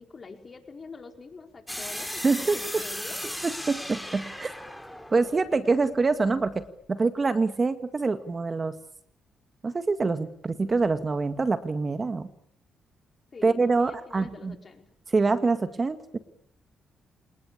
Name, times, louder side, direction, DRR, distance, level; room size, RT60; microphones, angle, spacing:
voice 1, 0.0-3.2 13.3-14.9, left 4 dB, 40° left, 4 dB, 4.7 m, -46 dB
sound 1, 1.7-6.5, left 1 dB, 5° left, 3.5 m, -37 dB
voice 2, 2.2-2.8 3.4-4.5 5.1-8.7 9.6-12.3 13.4-14.6 15.1-16.2, right 3 dB, 35° right, 10 dB, 2.0 m, -25 dB
27.0 x 20.0 x 8.6 m, 0.66 s
supercardioid pair, 65°, 0 cm